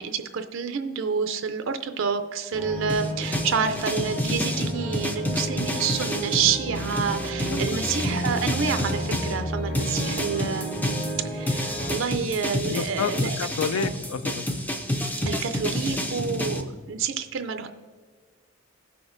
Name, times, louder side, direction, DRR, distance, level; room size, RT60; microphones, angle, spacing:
voice 1, 0.0-13.3 13.7-13.9 15.2-17.7, right 6 dB, 60° right, 8 dB, 0.4 m, -28 dB
sound 1, 2.5-12.0, equal, 50° left, 1.6 m, -32 dB
sound 2, 2.9-9.4 9.7-16.6, left 1 dB, 10° left, 0.4 m, -29 dB
voice 2, 7.5-7.8 8.1-8.2 12.7-14.6, left 6 dB, 75° left, 14 dB, 0.3 m, -30 dB
16.5 x 6.0 x 2.5 m, 1.5 s
head